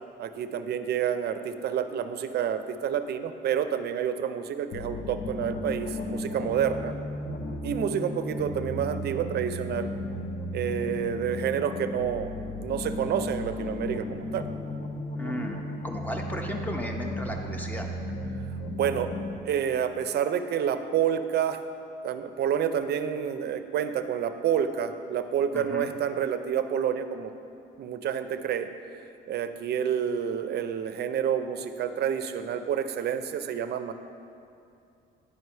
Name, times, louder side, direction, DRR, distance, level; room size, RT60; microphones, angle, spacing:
voice 1, 0.2-6.9 7.6-9.9 10.5-12.3 12.6-14.4 18.7-19.1 19.4-21.6 22.0-27.3 27.8-28.7 29.3-33.9, right 8 dB, 55° right, 9 dB, 0.5 m, -29 dB
sound 1, 4.7-19.4, left 1 dB, 40° left, 0.7 m, -35 dB
voice 2, 15.2-17.9 25.5-25.9, left 1 dB, 10° left, 2 dB, 0.8 m, -35 dB
9.7 x 4.7 x 5.5 m, 2.6 s
cardioid pair, 135°, 20 cm